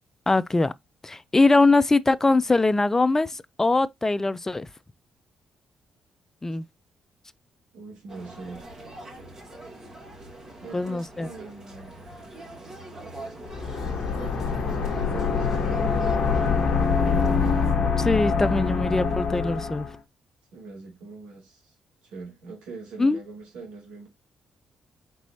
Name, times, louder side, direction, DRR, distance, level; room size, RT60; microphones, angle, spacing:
voice 1, 0.3-0.7 1.0-4.7 6.4-6.7 10.7-11.3 18.0-19.9 23.0-23.2, left 3 dB, 20° left, 0.4 m, -22 dB
voice 2, 7.7-8.8 10.6-12.0 13.8-16.6 20.5-21.7 22.0-24.1, right 4 dB, 75° right, 2.6 m, -42 dB
sound 1, 8.1-17.7, right 2 dB, 30° right, 2.6 m, -43 dB
sound 2, 13.5-19.9, left 5 dB, 60° left, 1.2 m, -24 dB
4.6 x 4.1 x 2.7 m
hypercardioid pair, 50°, 2 cm